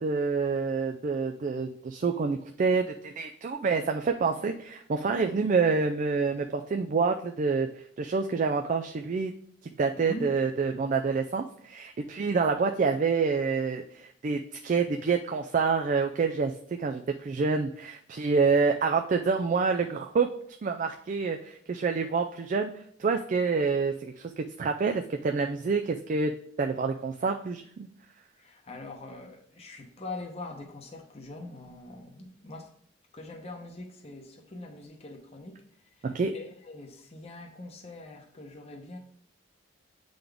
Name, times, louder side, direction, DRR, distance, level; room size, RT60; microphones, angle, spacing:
voice 1, 0.0-7.7 8.0-9.3 9.8-16.5 16.8-20.3 20.6-22.7 23.0-26.3 26.6-27.9 36.0-36.3, right 4 dB, 40° right, 0.3 m, -27 dB
voice 2, 9.9-10.3 28.4-32.7 33.1-35.6 36.0-39.0, left 2 dB, 35° left, 0.9 m, -43 dB
8.3 x 3.9 x 3.4 m
head